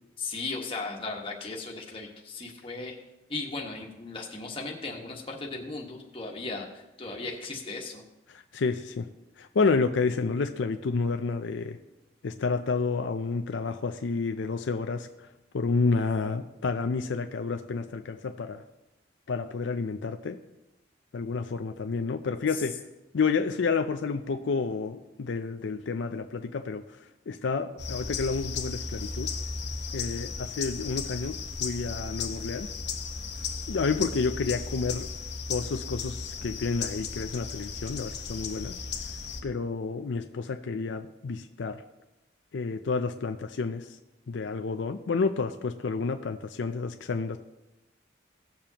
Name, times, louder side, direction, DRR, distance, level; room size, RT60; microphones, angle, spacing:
voice 1, 0.2-3.0 3.3-8.0 22.5-22.6, left 3 dB, 30° left, 0 dB, 1.4 m, -36 dB
voice 2, 8.3-9.1 9.4-11.8 12.2-15.1 15.5-18.6 19.3-20.4 21.1-22.8 23.1-26.8 27.3-29.3 29.9-32.7 33.7-35.1 35.5-38.8 39.4-41.8 42.5-44.0 44.3-47.4, left 4 dB, 75° left, 6 dB, 0.5 m, -30 dB
sound 1, 27.8-39.4, left 5 dB, 60° left, 0.9 m, -35 dB
17.0 x 7.0 x 2.9 m, 1.0 s
head